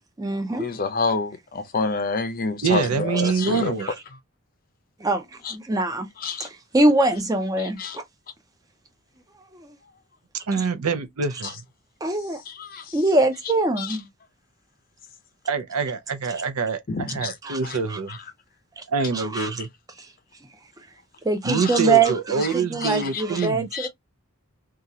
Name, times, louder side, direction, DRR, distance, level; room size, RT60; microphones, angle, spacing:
voice 1, 0.0-0.7 3.5-3.9 5.0-5.2 5.5-6.1 6.4-8.0 9.5-9.7 10.6-10.7 12.0-12.4 12.9-14.1 17.4-17.6 17.9-18.0 18.8-18.9 19.1-19.6 21.2-23.9, right 3 dB, 15° right, 0.5 m, -23 dB
voice 2, 0.6-3.7 5.4-5.5 6.2-6.5 7.6-8.0 12.5-12.9 13.8-13.9 16.9-17.3 17.6-17.8 18.1-18.2 19.4-19.5 21.6-21.8 22.8-23.5 23.7-23.9, left 4 dB, 40° left, 0.5 m, -28 dB
voice 3, 2.6-3.9 10.5-11.5 15.5-18.2 18.9-19.7 21.4-23.7, right 4 dB, 85° right, 0.6 m, -25 dB
2.9 x 2.4 x 2.6 m
head